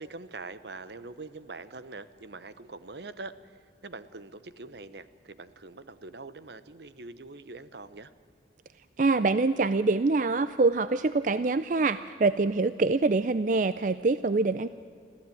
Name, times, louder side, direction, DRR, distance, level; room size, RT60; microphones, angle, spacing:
voice 1, 0.0-3.3 3.8-8.1, right 3 dB, 70° right, 14 dB, 0.9 m, -43 dB
voice 2, 9.0-14.7, right 3 dB, 45° right, 13 dB, 0.4 m, -25 dB
25.0 x 15.0 x 9.3 m, 2.5 s
head